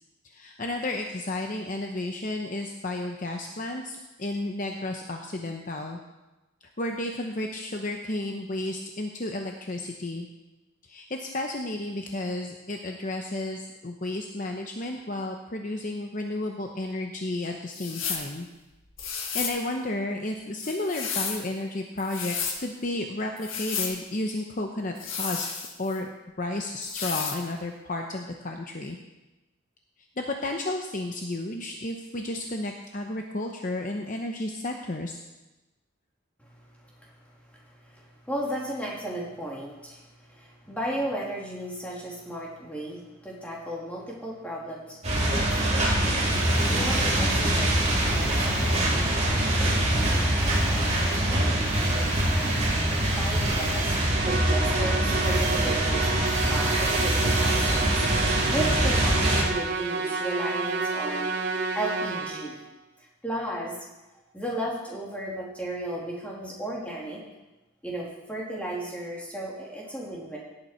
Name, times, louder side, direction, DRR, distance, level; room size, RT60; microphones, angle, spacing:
voice 1, 0.2-6.0 6.8-10.3 10.9-18.5 19.0-26.1 26.4-29.0 30.2-35.2, left 2 dB, 40° left, 3 dB, 0.8 m, -32 dB
sound 1, 17.7-18.3 19.0-19.6 20.6-21.4 22.0-22.6 23.4-24.0 25.0-26.0 26.8-27.4, left 6 dB, 70° left, 1.8 m, -32 dB
voice 2, 36.4-46.3 46.7-52.7 53.1-53.9 54.2-56.2 56.5-61.3 61.7-62.6 63.2-63.8 64.3-67.2 67.8-70.4, right 1 dB, 5° left, -4 dB, 2.8 m, -35 dB
sound 2, 45.0-59.4, right 1 dB, 30° right, 2.4 m, -24 dB
Musical instrument, 54.1-62.7, right 4 dB, 50° right, 0.9 m, -31 dB
17.5 x 9.0 x 4.4 m, 1.1 s
head